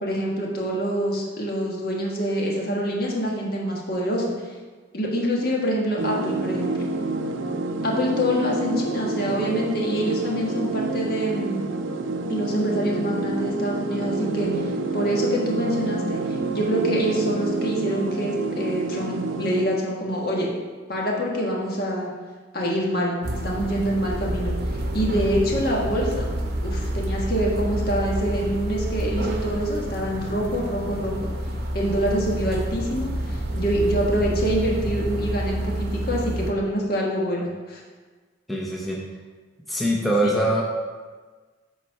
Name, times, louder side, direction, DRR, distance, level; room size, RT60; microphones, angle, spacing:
voice 1, 0.0-4.3 4.9-6.8 7.8-11.6 12.3-14.6 14.9-20.5 20.9-22.1 22.5-23.1 23.4-24.5 24.9-26.3 26.6-31.3 31.7-37.8 40.2-40.3, equal, 50° left, -2 dB, 1.5 m, -25 dB
sound 1, 6.0-19.7, right 2 dB, 75° right, 0.5 m, -28 dB
sound 2, 23.2-36.5, right 1 dB, 50° right, 0.8 m, -28 dB
voice 2, 38.5-39.0 39.7-40.6, right 1 dB, ahead, -4 dB, 0.7 m, -23 dB
8.1 x 4.4 x 5.6 m, 1.4 s
head